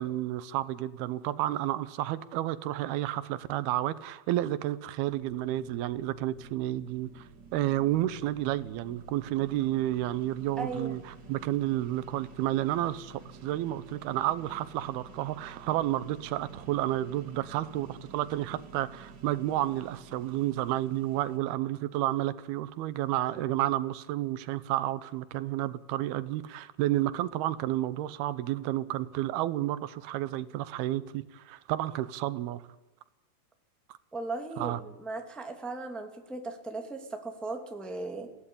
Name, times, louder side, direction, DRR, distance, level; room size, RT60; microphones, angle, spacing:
voice 1, 0.0-11.0 11.3-32.6 34.6-34.8, right 14 dB, 85° right, 2.8 m, -31 dB
sound 1, 5.0-21.4, right 3 dB, 35° right, 2.0 m, -50 dB
voice 2, 10.6-11.0 34.1-38.3, right 3 dB, ahead, 1.6 m, -37 dB
22.0 x 17.0 x 8.5 m
omnidirectional pair, 4.4 m